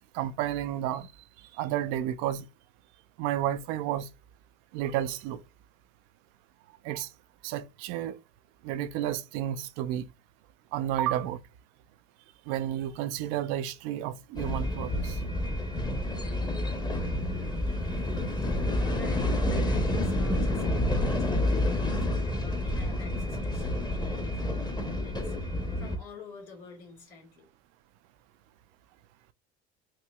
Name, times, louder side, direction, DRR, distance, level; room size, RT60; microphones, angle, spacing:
voice 1, 0.1-1.1 1.6-2.4 3.2-4.1 4.7-5.4 6.8-7.1 7.4-8.2 8.6-10.1 10.7-11.4 12.5-15.2, right 11 dB, 80° right, 0.5 m, -31 dB
sound 1, 14.4-26.0, left 1 dB, 15° left, 0.8 m, -29 dB
voice 2, 18.5-27.5, left 4 dB, 90° left, 1.7 m, -50 dB
4.5 x 2.8 x 2.3 m
supercardioid pair, 80°, 33 cm